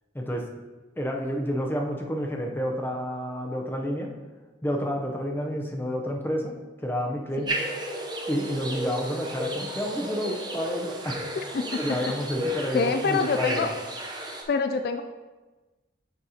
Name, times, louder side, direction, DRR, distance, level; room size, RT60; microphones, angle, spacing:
voice 1, 0.1-0.5 1.0-4.2 4.6-6.5 6.8-7.5 8.3-11.5 11.8-13.7, equal, 10° left, 1 dB, 0.6 m, -30 dB
sound 1, 7.4-14.4, right 1 dB, 25° right, 0.7 m, -33 dB
voice 2, 11.4-11.7 12.7-13.7 14.5-15.0, left 4 dB, 55° left, 7 dB, 0.3 m, -26 dB
10.5 x 4.1 x 2.8 m, 1.2 s
head